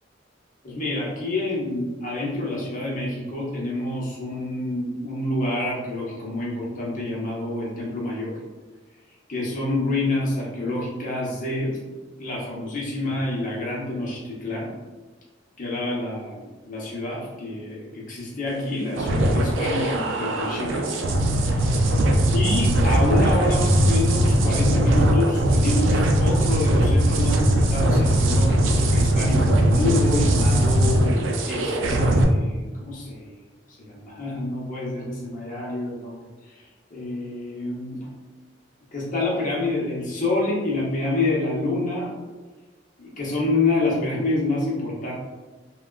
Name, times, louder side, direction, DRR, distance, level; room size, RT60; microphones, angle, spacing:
voice 1, 0.6-8.3 9.3-11.8 12.2-14.7 15.6-21.0 21.4-31.1 31.4-33.4 33.8-36.2 36.9-38.1 38.9-42.1 43.0-45.1, left 2 dB, 45° left, -4 dB, 0.8 m, -27 dB
sound 1, 18.9-32.2, right 1 dB, 90° right, 0.4 m, -20 dB
3.4 x 2.3 x 2.3 m, 1.2 s
head